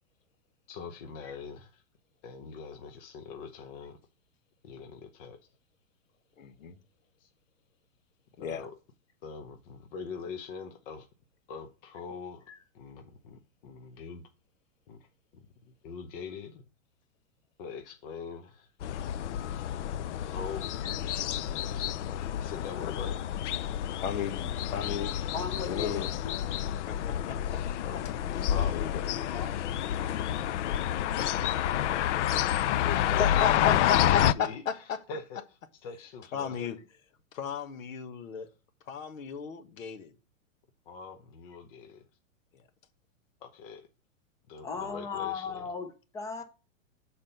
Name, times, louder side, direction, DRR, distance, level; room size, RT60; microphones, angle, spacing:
voice 1, 0.7-1.8 2.2-4.0 4.6-5.5 7.2-7.3 8.4-8.8 9.2-11.1 11.5-14.2 14.9-16.7 17.6-18.7 20.3-21.9 22.2-23.5 27.8-28.0 28.5-28.8 29.3-31.5 31.9-34.8 35.1-35.4 35.8-36.8 40.9-42.1 43.4-43.9 44.5-45.7, left 5 dB, 45° left, 0.9 m, -43 dB
voice 2, 6.4-6.8 8.4-8.6 24.0-25.1 25.6-26.2 26.9-27.6 28.4-29.1 30.7-31.0 33.2-35.0 36.3-36.8 37.3-38.5 38.9-40.1 42.5-42.6, left 7 dB, 80° left, 1.4 m, -34 dB
sound 1, 18.8-34.3, left 11 dB, 60° left, 0.5 m, -29 dB
voice 3, 25.3-26.3 44.6-46.4, left 5 dB, 10° left, 0.5 m, -37 dB
7.4 x 4.3 x 5.3 m
hypercardioid pair, 155°, 39 cm